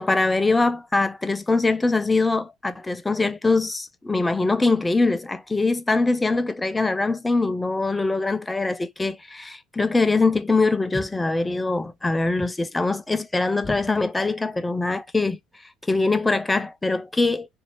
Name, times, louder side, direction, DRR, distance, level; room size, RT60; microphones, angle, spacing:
voice 1, 0.0-15.4 15.9-17.5, left 3 dB, 10° left, 0.5 m, -23 dB
3.3 x 2.6 x 4.2 m
cardioid pair, 115°, 0 cm